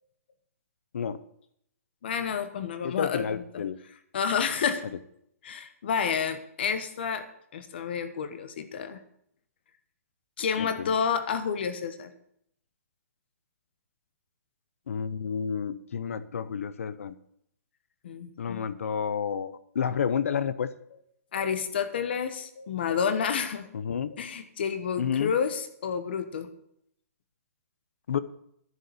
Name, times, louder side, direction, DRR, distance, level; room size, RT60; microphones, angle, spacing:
voice 1, 2.0-3.6 4.1-4.8 5.4-7.3 7.5-9.0 10.4-12.1 18.0-18.6 21.3-23.7 24.1-26.5, left 7 dB, 40° left, 10 dB, 1.2 m, -30 dB
voice 2, 2.8-3.8 10.6-10.9 14.9-17.1 18.4-20.7 23.7-24.1 25.0-25.3 28.1-28.2, left 7 dB, 60° left, 15 dB, 0.8 m, -30 dB
11.0 x 6.9 x 9.1 m, 0.72 s
hypercardioid pair, 175°, 8 cm